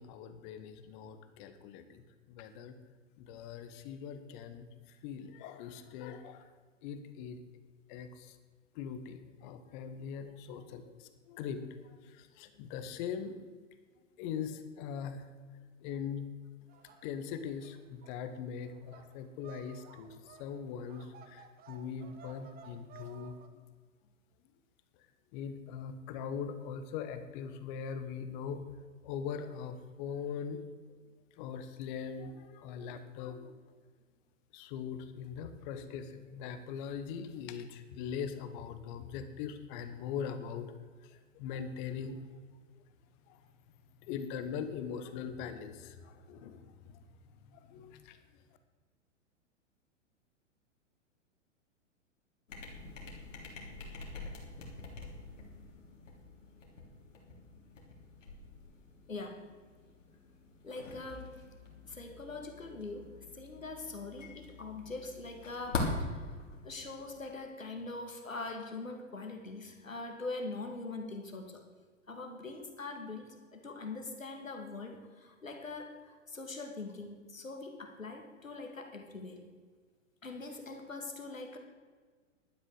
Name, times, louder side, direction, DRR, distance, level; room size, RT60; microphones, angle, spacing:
voice 1, 0.0-2.0 2.3-2.7 3.2-4.7 5.0-6.5 6.8-7.4 7.9-8.3 8.7-13.3 14.2-15.3 15.8-16.3 17.0-23.4 25.3-28.6 29.0-30.6 31.4-33.5 34.5-40.7 41.0-42.2 43.3-43.4 44.0-47.0 47.5-48.2, left 7 dB, 40° left, 10 dB, 1.3 m, -41 dB
sound 1, 16.7-23.5, right 7 dB, 25° right, 1.1 m, -55 dB
sound 2, 52.5-67.3, left 3 dB, 70° left, 3.1 m, -44 dB
voice 2, 60.6-61.4 61.9-71.6 72.1-79.4 80.2-81.6, left 3 dB, 85° left, 4 dB, 2.3 m, -43 dB
12.0 x 9.5 x 6.5 m, 1.5 s
figure-of-eight pair, 105°, 39 cm